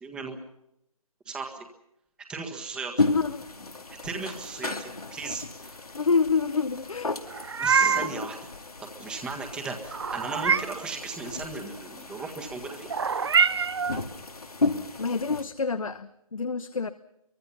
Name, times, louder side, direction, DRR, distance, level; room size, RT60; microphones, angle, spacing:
voice 1, 0.0-0.4 1.3-1.7 2.3-2.9 4.0-5.8 7.6-8.4 9.0-12.9, right 4 dB, 5° right, 3 dB, 1.7 m, -36 dB
sound 1, 3.0-15.4, left 3 dB, 80° left, 2.4 m, -34 dB
voice 2, 3.1-3.5 5.9-7.2 15.0-16.9, left 5 dB, 65° left, 11 dB, 1.1 m, -27 dB
Meow, 7.3-8.2 9.9-10.9 12.9-14.0, right 6 dB, 45° right, 0.9 m, -25 dB
25.5 x 24.0 x 5.7 m, 0.82 s
figure-of-eight pair, 160°, 19 cm